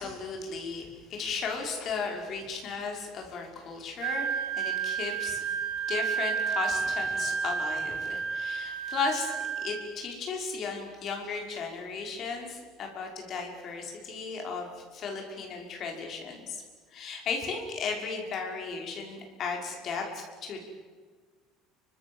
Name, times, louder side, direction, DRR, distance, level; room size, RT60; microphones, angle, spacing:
voice 1, 0.0-5.4 5.9-16.6 16.9-20.6, left 4 dB, 30° left, 1 dB, 5.7 m, -35 dB
Wind instrument woodwind instrument, 4.0-9.8, right 6 dB, 55° right, 7.4 m, -31 dB
30.0 x 25.0 x 7.2 m, 1.5 s
cardioid pair, 180°, 0 cm